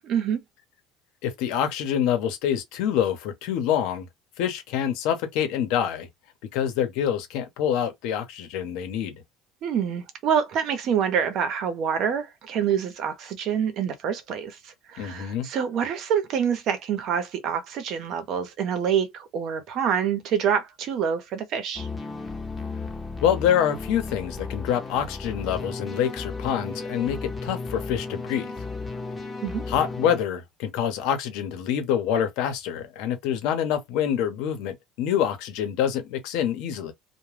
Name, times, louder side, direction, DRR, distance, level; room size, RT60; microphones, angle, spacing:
voice 1, 0.0-0.4 9.6-21.9 29.4-29.6, right 8 dB, 55° right, 0.8 m, -26 dB
voice 2, 1.2-4.1 4.4-6.1 6.5-9.2 15.0-15.5 23.2-28.5 29.7-36.9, left 9 dB, 75° left, 0.9 m, -26 dB
sound 1, 21.8-30.3, left 4 dB, 15° left, 0.8 m, -34 dB
2.3 x 2.3 x 3.2 m
supercardioid pair, 115°, 0 cm